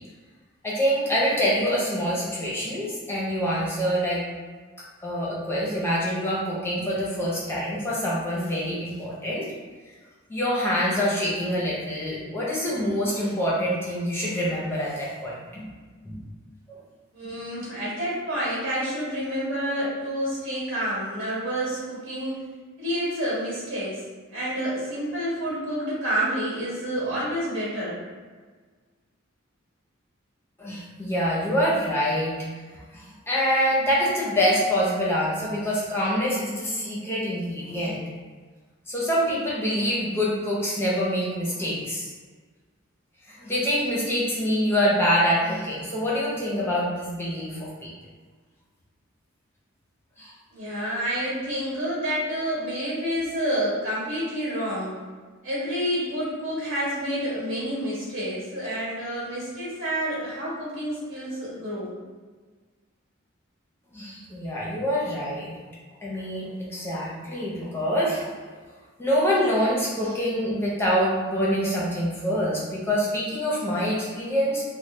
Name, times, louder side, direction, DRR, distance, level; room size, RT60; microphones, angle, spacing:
voice 1, 0.6-4.2 5.0-9.5 10.3-15.6 16.1-16.2 16.7-16.8 30.6-32.3 32.9-38.0 38.9-42.1 43.3-47.9 50.2-50.3 63.9-65.6 66.0-68.3 69.0-74.6, equal, 10° left, -6 dB, 0.6 m, -25 dB
voice 2, 17.1-22.4 22.8-24.0 24.3-28.0 50.5-55.0 55.4-61.9, equal, 65° right, -8 dB, 1.4 m, -29 dB
3.1 x 2.1 x 3.2 m, 1.5 s
head